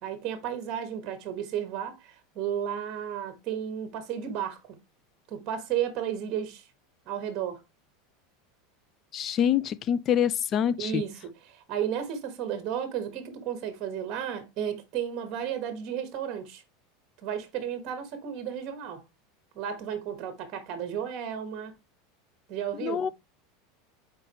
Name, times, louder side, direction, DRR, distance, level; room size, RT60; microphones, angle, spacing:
voice 1, 0.0-4.8 5.3-6.6 7.1-7.6 10.8-16.6 17.2-19.0 19.5-21.7 22.5-23.1, right 9 dB, 35° right, 1.4 m, -33 dB
voice 2, 9.1-11.0 22.8-23.1, left 9 dB, 30° left, 0.4 m, -26 dB
7.8 x 4.5 x 3.0 m
supercardioid pair, 160°, 0 cm